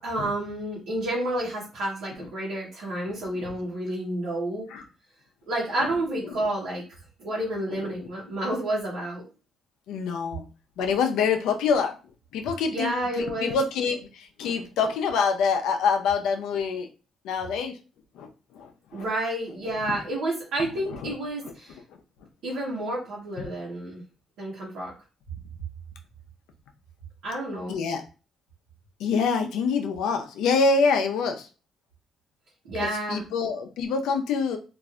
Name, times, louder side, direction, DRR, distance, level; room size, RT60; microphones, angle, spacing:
voice 1, 0.0-4.7 5.5-6.8 7.2-9.2 12.7-13.6 18.9-21.8 22.4-24.0 24.4-24.9 27.2-27.8 32.6-33.2, right 1 dB, 85° right, -6 dB, 1.0 m, -30 dB
voice 2, 9.9-10.5 10.8-12.0 12.3-16.9 17.2-17.8 18.1-19.1 19.9-20.0 20.9-21.1 21.4-21.5 23.4-23.5 27.7-28.0 29.0-31.5 32.7-34.6, left 5 dB, 90° left, 5 dB, 0.5 m, -26 dB
3.1 x 2.5 x 2.4 m, 0.34 s
cardioid pair, 90°, 0 cm